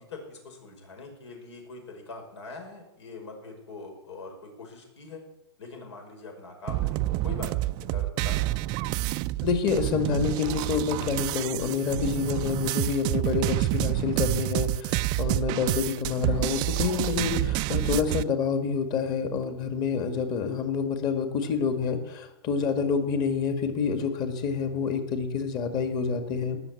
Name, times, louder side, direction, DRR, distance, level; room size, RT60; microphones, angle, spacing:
voice 1, 0.0-5.2 5.6-8.5, left 3 dB, 80° left, 3 dB, 5.7 m, -43 dB
sound 1, 6.7-18.2, right 17 dB, 30° right, 0.4 m, -28 dB
voice 2, 9.4-26.6, left 6 dB, 30° left, 7 dB, 2.0 m, -28 dB
19.0 x 6.9 x 8.5 m, 0.94 s
hypercardioid pair, 145°, 14 cm